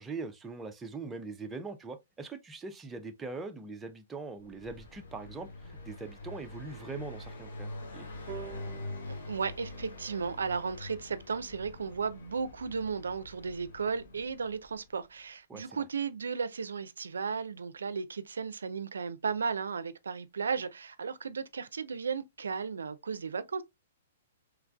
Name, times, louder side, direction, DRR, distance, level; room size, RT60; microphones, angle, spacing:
voice 1, 0.0-8.1 15.5-15.9, right 3 dB, 10° right, 0.4 m, -42 dB
Car passing by, 4.4-15.0, left 2 dB, 75° left, 1.0 m, -45 dB
sound 1, 8.3-11.5, right 9 dB, 30° right, 0.8 m, -49 dB
voice 2, 9.1-23.6, right 5 dB, 90° right, 0.4 m, -35 dB
3.2 x 2.4 x 2.2 m
hypercardioid pair, 135°, 0 cm